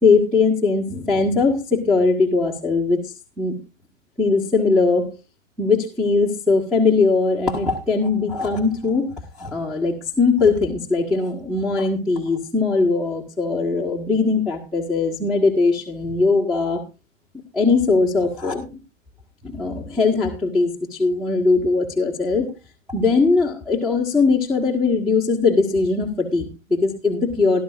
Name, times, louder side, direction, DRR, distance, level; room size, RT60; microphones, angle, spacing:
voice 1, 0.0-3.6 4.2-5.1 5.6-16.8 17.5-18.8 19.4-22.5 22.9-27.6, left 4 dB, ahead, 3 dB, 1.6 m, -20 dB
18.0 x 12.0 x 2.5 m, 0.28 s
hypercardioid pair, 130°, 39 cm